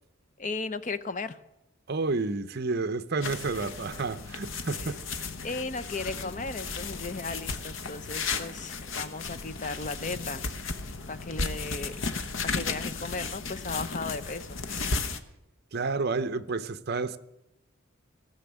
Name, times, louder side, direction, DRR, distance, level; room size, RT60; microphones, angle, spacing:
voice 1, 0.4-1.4 4.8-5.0 5.4-10.4 11.1-12.1 12.5-14.9, left 3 dB, 35° left, 0.6 m, -36 dB
voice 2, 1.9-5.2 15.7-17.2, right 3 dB, 50° right, 0.7 m, -30 dB
sound 1, 3.2-15.2, left 4 dB, 65° left, 1.0 m, -34 dB
17.0 x 7.0 x 9.7 m
head